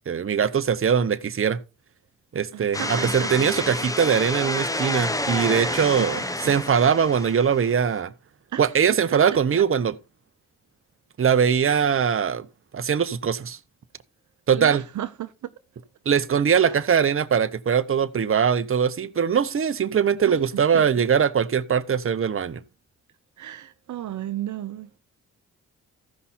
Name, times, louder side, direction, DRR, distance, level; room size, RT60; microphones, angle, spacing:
voice 1, 0.1-1.6 2.3-8.1 8.6-9.9 11.2-12.5 12.7-13.6 14.5-14.8 16.1-22.6, right 7 dB, 45° right, 0.9 m, -21 dB
voice 2, 2.5-3.3 5.5-6.1 6.4-6.5 8.5-8.6 9.1-9.2 9.5-9.6 11.6-12.0 14.5-15.3 16.6-16.8 20.3-20.4 20.7-20.8 23.4-24.9, right 12 dB, 70° right, 0.7 m, -34 dB
sound 1, 2.7-7.9, left 1 dB, 10° left, 1.0 m, -29 dB
14.5 x 5.6 x 4.2 m
supercardioid pair, 55°, 31 cm